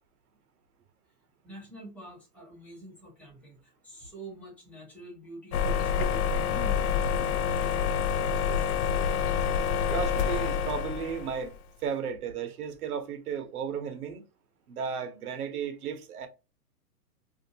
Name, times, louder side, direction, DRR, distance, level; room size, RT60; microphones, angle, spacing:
voice 1, 1.4-8.1, right 1 dB, 5° left, 1.1 m, -46 dB
sound 1, 5.5-11.5, left 7 dB, 65° left, 0.5 m, -27 dB
voice 2, 9.9-14.2 14.7-16.3, right 7 dB, 65° right, 0.9 m, -34 dB
2.6 x 2.5 x 2.6 m
hypercardioid pair, 135°, 48 cm